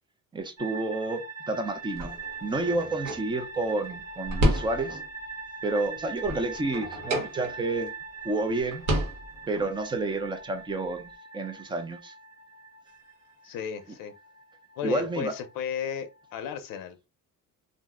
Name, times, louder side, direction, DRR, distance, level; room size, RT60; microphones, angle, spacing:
voice 1, 0.3-5.0 5.6-7.9 8.2-8.8 9.5-12.1 14.8-15.3, right 2 dB, 15° right, 0.4 m, -30 dB
sound 1, 0.6-16.3, right 4 dB, 55° right, 1.3 m, -42 dB
sound 2, 1.9-5.2 5.6-7.9 8.2-8.3 8.6-9.7, equal, 75° right, 1.1 m, -31 dB
voice 2, 13.4-14.1 14.8-17.0, left 7 dB, 75° left, 0.5 m, -34 dB
2.4 x 2.0 x 3.5 m
cardioid pair, 145°, 33 cm